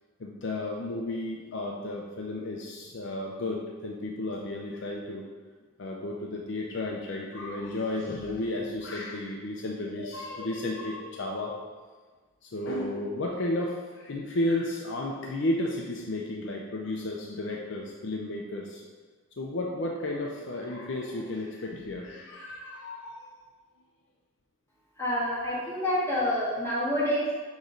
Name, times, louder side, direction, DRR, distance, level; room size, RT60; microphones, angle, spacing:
voice 1, 0.2-5.3 5.8-11.7 12.4-18.8 19.4-23.4, left 1 dB, 55° left, -1 dB, 0.5 m, -33 dB
voice 2, 25.0-27.4, equal, 15° left, -9 dB, 1.7 m, -28 dB
6.3 x 3.1 x 5.0 m, 1.4 s
head